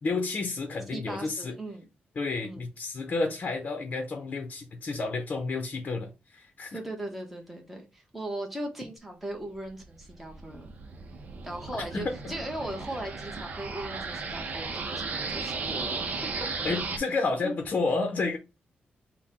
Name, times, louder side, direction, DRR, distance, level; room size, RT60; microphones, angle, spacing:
voice 1, 0.0-1.6 2.2-6.8 11.7-12.3 16.6-18.4, left 3 dB, 45° left, 0.7 m, -31 dB
voice 2, 0.9-1.9 2.4-2.6 6.7-10.7 11.4-16.5 17.4-17.5, right 1 dB, 5° right, 1.0 m, -38 dB
sound 1, 9.7-17.0, right 4 dB, 45° right, 0.8 m, -35 dB
5.6 x 2.2 x 4.2 m
wide cardioid pair, 155°, 3 cm